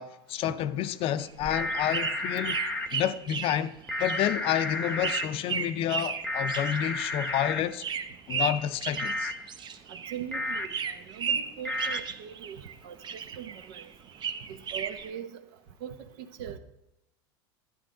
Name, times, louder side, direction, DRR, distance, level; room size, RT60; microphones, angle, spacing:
voice 1, 0.0-2.6 2.9-7.8 8.3-9.3, left 11 dB, 50° left, 0.5 m, -29 dB
sound 1, 1.2-10.2 10.5-12.7 13.0-15.1, right 6 dB, 35° right, 0.8 m, -35 dB
sound 2, 1.5-2.9 3.9-5.3 6.2-7.6 9.0-9.3 10.3-10.7 11.6-12.0, left 1 dB, 10° left, 0.8 m, -32 dB
voice 2, 10.1-13.0 13.3-13.9 14.5-15.4 15.8-16.6, right 9 dB, 70° right, 1.0 m, -41 dB
12.0 x 9.5 x 3.8 m
hypercardioid pair, 95°, 12 cm